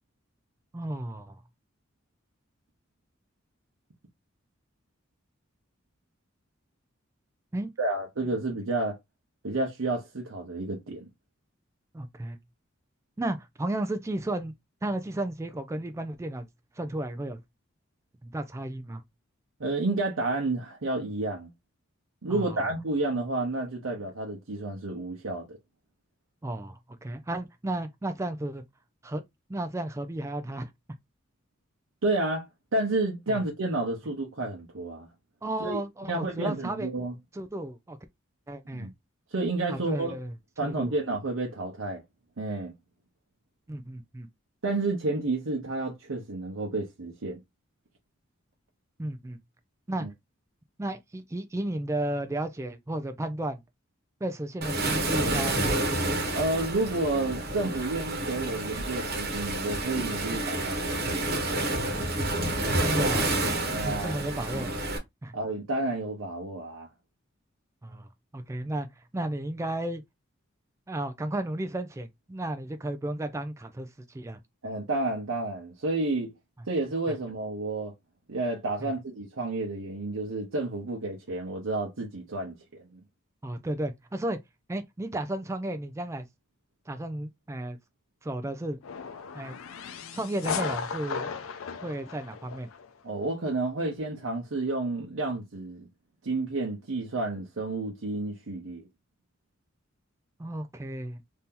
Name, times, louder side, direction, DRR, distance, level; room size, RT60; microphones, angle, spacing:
voice 1, 0.7-1.4 7.5-7.7 11.9-12.4 13.2-14.6 14.8-16.5 16.8-17.4 18.2-19.0 22.3-22.7 26.4-28.6 29.0-29.2 29.5-30.7 33.3-33.4 35.4-36.9 37.3-38.0 38.5-38.9 39.7-40.3 40.6-40.9 43.7-44.3 49.0-49.4 49.9-50.1 50.8-53.6 54.2-55.9 62.8-63.3 63.8-64.7 65.2-65.3 67.8-68.1 68.3-70.0 70.9-73.9 74.1-74.4 77.1-77.2 78.8-78.9 83.4-84.4 84.7-86.3 86.9-87.8 88.2-88.8 89.3-89.6 90.1-91.3 91.8-92.7 100.4-101.2, right 1 dB, 15° right, 0.3 m, -33 dB
voice 2, 7.8-9.0 9.4-11.1 19.6-21.5 22.2-25.6 32.0-32.5 32.7-35.1 35.6-35.8 36.1-37.1 38.7-38.9 39.3-40.1 40.6-42.0 42.4-42.7 44.6-47.4 50.0-50.1 56.3-61.3 63.7-64.2 65.3-66.9 74.6-76.3 76.7-77.9 78.3-83.0 93.0-95.9 96.2-98.9, right 2 dB, 80° right, 0.8 m, -30 dB
Waves surf, 54.6-65.0, right 1 dB, 50° right, 1.1 m, -29 dB
sound 1, 88.8-92.9, left 6 dB, 80° left, 0.5 m, -36 dB
2.8 x 2.6 x 3.6 m
head